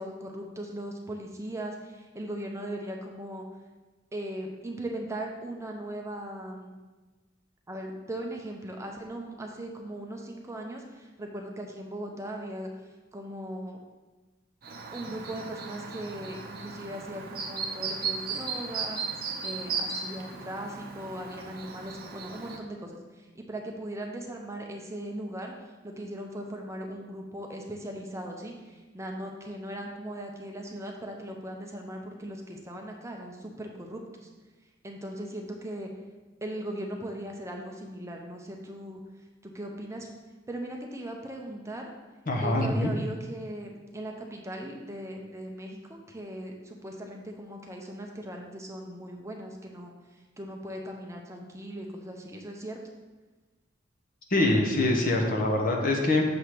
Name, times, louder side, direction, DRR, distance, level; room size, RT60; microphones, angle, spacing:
voice 1, 0.0-3.4 4.1-6.8 7.7-12.7 13.1-13.8 14.9-19.0 19.4-34.3 34.8-35.9 36.4-39.0 39.4-40.1 40.5-41.9 42.4-52.8, right 1 dB, 15° right, 1 dB, 0.6 m, -39 dB
Chirp tweet, 14.6-22.6, right 5 dB, 50° right, 0.7 m, -36 dB
voice 2, 42.3-42.9 54.3-56.2, left 2 dB, 45° left, 1 dB, 1.0 m, -24 dB
6.7 x 3.3 x 5.8 m, 1.2 s
head